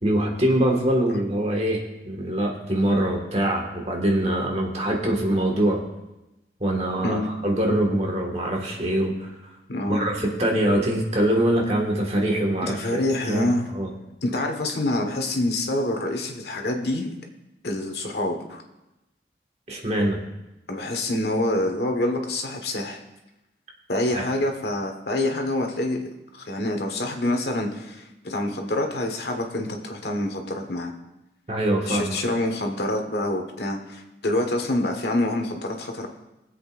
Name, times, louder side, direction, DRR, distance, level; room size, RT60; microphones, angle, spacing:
voice 1, 0.0-5.8 6.6-9.3 9.9-13.9 19.7-20.2 24.1-24.3 31.5-32.2, right 1 dB, 35° right, 0 dB, 1.8 m, -24 dB
voice 2, 7.0-7.3 9.7-10.1 12.6-13.7 14.2-17.1 17.6-18.6 20.7-23.0 23.9-30.9 31.9-36.1, left 1 dB, 70° left, 3 dB, 1.5 m, -26 dB
23.0 x 7.9 x 2.6 m, 0.98 s
head